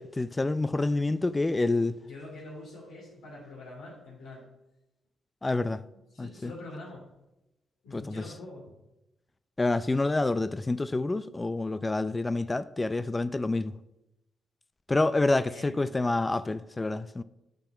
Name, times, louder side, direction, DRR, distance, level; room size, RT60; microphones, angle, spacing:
voice 1, 0.0-1.9 5.4-5.8 6.2-6.5 7.9-8.2 9.6-13.7 14.9-17.2, left 2 dB, 25° left, 0.4 m, -28 dB
voice 2, 2.1-4.4 6.1-7.1 7.8-8.7 15.5-16.1, left 2 dB, 85° left, 3.2 m, -45 dB
8.6 x 6.1 x 5.6 m
supercardioid pair, 55°, 0 cm